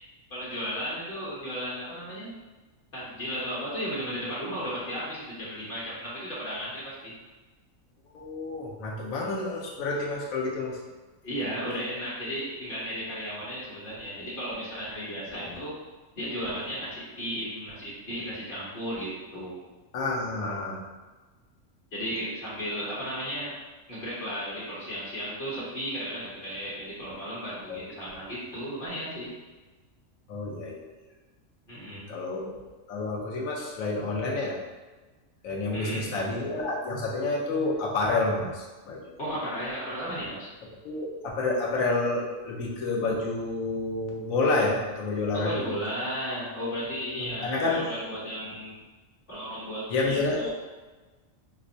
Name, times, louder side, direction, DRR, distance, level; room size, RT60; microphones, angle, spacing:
voice 1, 0.3-2.3 2.9-7.1 11.2-15.8 16.1-19.6 21.9-23.6 23.9-29.3 31.7-32.1 35.7-36.1 39.2-40.5 45.3-48.7 49.3-50.5, equal, 45° left, -8 dB, 1.2 m, -34 dB
voice 2, 8.1-10.7 15.3-15.6 19.9-20.8 27.7-27.8 30.3-30.9 32.1-32.5 32.9-34.5 35.4-39.2 40.8-45.7 47.2-47.9 49.9-50.5, left 2 dB, 80° left, -2 dB, 1.1 m, -29 dB
5.1 x 2.0 x 2.6 m, 1.2 s
omnidirectional pair, 1.4 m